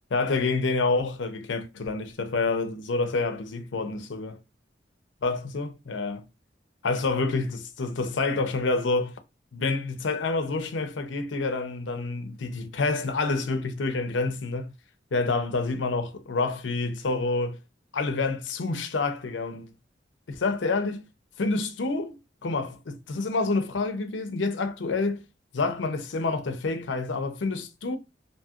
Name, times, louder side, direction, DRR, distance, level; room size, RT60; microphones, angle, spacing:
voice 1, 0.1-4.4 5.2-6.2 6.8-9.1 9.5-14.7 15.1-17.6 17.9-19.7 20.3-21.0 21.4-25.2 25.5-28.0, left 3 dB, 85° left, 0.6 m, -28 dB
2.7 x 2.4 x 2.7 m
head